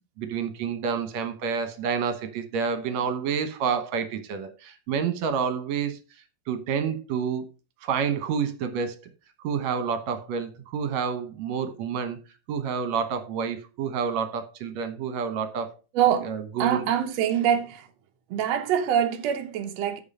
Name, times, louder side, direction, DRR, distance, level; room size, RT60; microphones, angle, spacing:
voice 1, 0.2-6.0 6.5-7.4 7.8-9.1 9.4-12.2 12.5-15.8 16.2-16.8, right 6 dB, 65° right, 2.0 m, -29 dB
voice 2, 15.9-16.3 16.6-17.9 18.3-20.0, right 9 dB, 85° right, 1.4 m, -24 dB
9.5 x 5.5 x 5.5 m
omnidirectional pair, 4.4 m